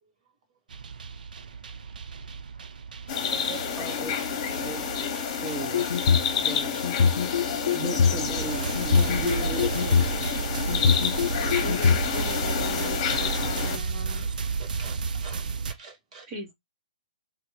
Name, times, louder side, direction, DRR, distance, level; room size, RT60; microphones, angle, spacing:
sound 1, 0.7-15.7, right 5 dB, 80° right, 0.5 m, -33 dB
sound 2, 3.1-13.8, left 7 dB, 35° left, 1.3 m, -30 dB
voice 1, 3.3-5.9 6.4-6.8 7.4-10.1, right 3 dB, 10° right, 0.7 m, -37 dB
sound 3, 5.6-6.3 6.8-8.2 8.8-10.1 10.7-12.0, left 6 dB, 75° left, 0.5 m, -23 dB
voice 2, 9.5-9.9 11.5-11.6 12.2-12.4 12.8-13.4 13.7-14.3 14.6-15.4 15.7-16.3, right 4 dB, 50° right, 1.8 m, -46 dB
voice 3, 11.6-14.3 16.3-16.5, equal, 30° right, 1.4 m, -38 dB
3.4 x 2.6 x 3.0 m
hypercardioid pair, 160°, 5 cm